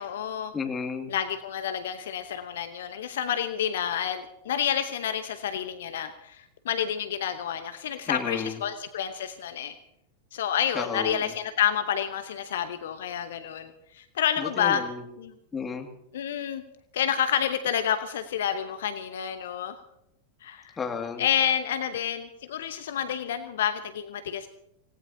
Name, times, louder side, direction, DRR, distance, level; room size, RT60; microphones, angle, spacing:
voice 1, 0.0-0.5 1.1-9.7 10.3-14.8 15.2-15.3 16.1-16.6 16.9-19.8 20.4-20.8 21.2-24.5, left 9 dB, 60° left, 9 dB, 1.0 m, -29 dB
voice 2, 0.5-1.1 8.1-8.6 10.7-11.2 14.4-15.0 15.5-15.9 20.8-21.2, left 5 dB, 15° left, 3 dB, 2.4 m, -32 dB
26.0 x 18.5 x 2.9 m, 0.81 s
figure-of-eight pair, 90°, 0 cm